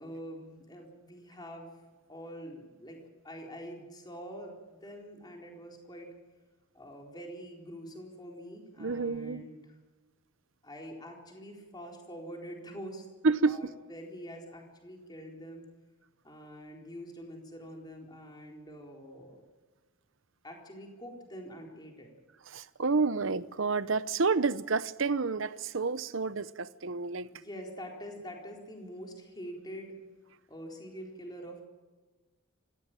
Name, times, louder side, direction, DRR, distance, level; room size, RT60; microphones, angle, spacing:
voice 1, 0.0-1.8 2.1-6.1 6.7-9.7 10.6-13.1 13.4-15.7 16.2-19.4 20.4-22.1 27.3-30.0 30.5-31.6, equal, 20° left, 4.1 m, -45 dB
voice 2, 8.8-9.4 13.2-13.6 22.5-27.3, right 4 dB, 65° right, 0.8 m, -29 dB
25.5 x 16.0 x 9.1 m
head